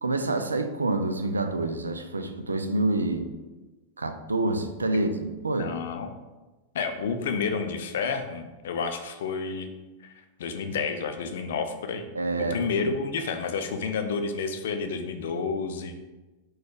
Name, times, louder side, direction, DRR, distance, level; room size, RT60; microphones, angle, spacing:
voice 1, 0.0-3.3 4.0-5.7 12.2-12.9, right 2 dB, 80° right, 8 dB, 0.3 m, -27 dB
voice 2, 5.6-6.1 6.7-9.7 10.0-10.1 10.4-12.1 12.5-16.0, left 5 dB, 60° left, 6 dB, 0.4 m, -30 dB
4.1 x 2.2 x 4.6 m, 1.2 s
figure-of-eight pair, 90°, 0 cm